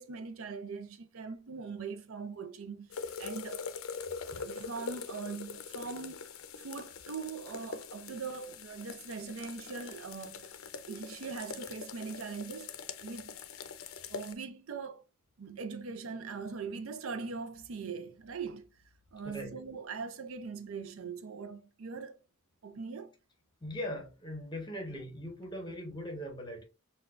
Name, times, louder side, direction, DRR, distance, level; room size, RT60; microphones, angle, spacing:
voice 1, 0.0-3.7 4.4-10.5 10.9-12.7 13.0-13.4 14.1-15.0 15.4-18.7 19.1-22.2 22.6-23.1, right 5 dB, 70° right, 0.5 m, -41 dB
sound 1, 2.9-14.3, left 5 dB, 75° left, 0.5 m, -43 dB
voice 2, 23.6-26.6, equal, 20° left, 0.9 m, -40 dB
6.4 x 2.3 x 2.4 m
head